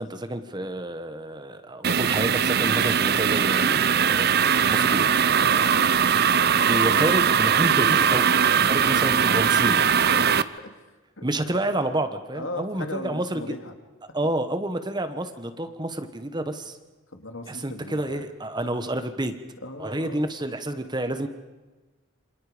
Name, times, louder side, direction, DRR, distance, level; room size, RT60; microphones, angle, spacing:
voice 1, 0.0-5.1 6.7-9.8 11.2-13.4 14.1-16.8 17.5-19.3 19.8-21.3, right 1 dB, 20° right, 9 dB, 1.3 m, -29 dB
sound 1, 1.8-10.4, right 7 dB, 50° right, 0.7 m, -20 dB
voice 2, 5.3-5.7 8.6-9.2 10.0-10.4 11.2-11.3 12.3-13.7 17.1-18.2 19.6-20.1, left 2 dB, 70° left, 6 dB, 2.5 m, -37 dB
27.5 x 26.5 x 5.2 m, 1.2 s
head